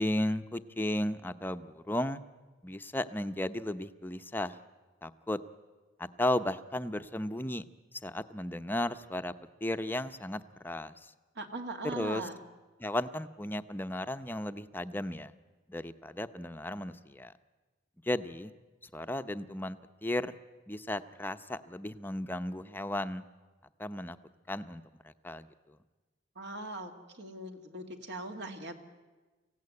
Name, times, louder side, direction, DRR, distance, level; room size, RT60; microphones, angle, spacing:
voice 1, 0.0-2.2 2.6-4.6 5.0-5.4 6.0-7.6 8.0-9.3 9.6-11.1 11.8-12.2 12.8-15.3 15.7-17.3 18.1-18.5 18.9-20.3 20.7-23.2 23.8-24.2 24.5-24.8 25.2-25.5, left 1 dB, 10° left, 11 dB, 0.7 m, -34 dB
voice 2, 11.4-12.4 26.4-26.9 27.2-28.8, right 2 dB, 65° right, 5 dB, 2.3 m, -40 dB
24.0 x 16.5 x 9.6 m, 1.3 s
head